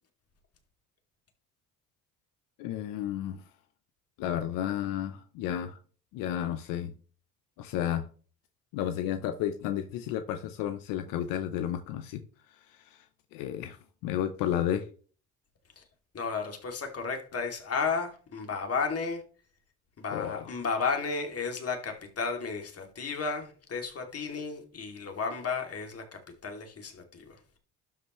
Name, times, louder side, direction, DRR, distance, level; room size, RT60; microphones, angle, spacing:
voice 1, 2.6-3.4 4.2-5.8 6.1-6.9 7.6-8.1 8.7-12.2 12.5-13.1 13.3-13.8 14.0-14.9 20.1-20.5, left 11 dB, 85° left, 9 dB, 0.8 m, -32 dB
voice 2, 16.1-19.2 20.0-27.4, left 5 dB, 45° left, 4 dB, 2.7 m, -33 dB
12.0 x 5.6 x 3.1 m, 0.41 s
supercardioid pair, 75°, 33 cm